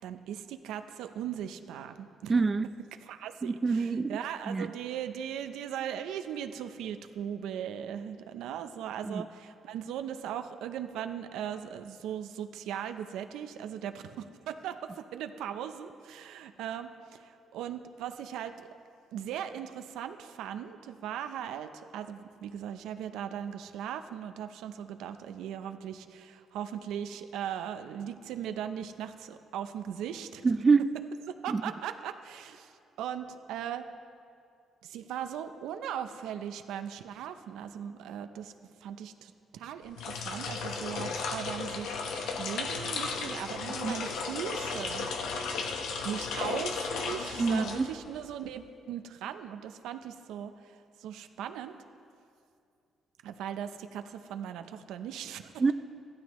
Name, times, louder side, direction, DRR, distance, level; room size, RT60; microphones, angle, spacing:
voice 1, 0.0-2.3 3.0-18.7 19.1-30.4 31.3-32.7 33.0-33.9 34.8-38.5 38.8-45.1 46.0-51.7 53.2-55.5, right 9 dB, 90° right, 9 dB, 0.5 m, -39 dB
voice 2, 2.3-2.7 3.4-4.2 4.5-4.7 9.0-9.2 30.4-30.9 31.5-31.6 43.8-44.0 47.4-47.9 55.6-55.7, right 4 dB, 30° right, 11 dB, 0.3 m, -26 dB
sound 1, 39.9-48.3, left 4 dB, 80° left, 0.9 m, -35 dB
14.5 x 12.0 x 3.1 m, 2.4 s
cardioid pair, 90°, 0 cm